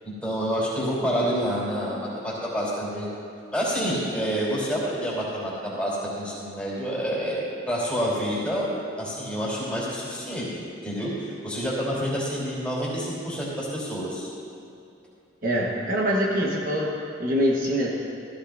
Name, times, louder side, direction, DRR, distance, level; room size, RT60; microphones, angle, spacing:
voice 1, 0.0-3.1 3.5-8.7 9.0-14.3, equal, 5° left, -7 dB, 3.4 m, -28 dB
voice 2, 15.4-17.9, equal, 45° right, -4 dB, 1.3 m, -24 dB
15.0 x 15.0 x 2.6 m, 2.6 s
head